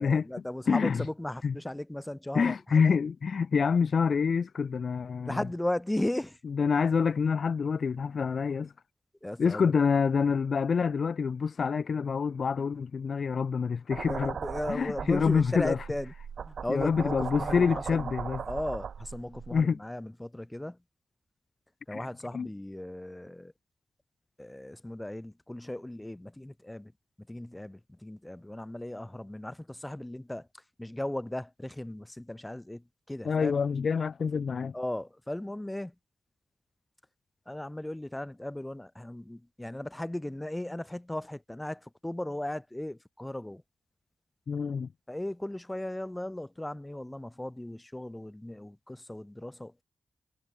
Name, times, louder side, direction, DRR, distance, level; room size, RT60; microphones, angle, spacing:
voice 1, 0.0-3.0 5.3-6.4 9.2-9.7 14.1-16.1 16.4-18.1 18.5-20.8 21.9-23.5 24.4-26.9 27.3-30.5 30.8-33.6 34.7-35.9 37.5-43.6 45.1-49.8, left 1 dB, 10° left, 3.8 m, -36 dB
voice 2, 0.7-1.1 1.4-1.6 2.3-5.4 6.4-8.7 9.4-14.3 14.7-15.8 16.7-18.4 19.5-19.8 21.9-22.5 33.2-34.7 44.5-44.9, left 6 dB, 60° left, 1.0 m, -27 dB
sound 1, 13.9-19.6, right 7 dB, 75° right, 3.6 m, -38 dB
wide cardioid pair, 120°, 0 cm